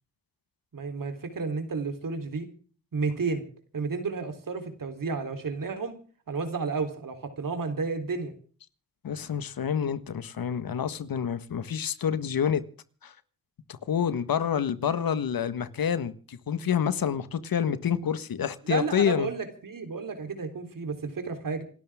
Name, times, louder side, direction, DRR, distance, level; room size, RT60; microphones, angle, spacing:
voice 1, 0.7-2.5 2.9-3.5 3.7-5.9 6.3-8.3 18.7-21.6, right 4 dB, 65° right, 3.7 m, -32 dB
voice 2, 9.0-12.6 13.0-13.1 13.9-19.3, left 8 dB, 75° left, 1.5 m, -28 dB
27.0 x 12.5 x 3.6 m
cardioid pair, 55°, 35 cm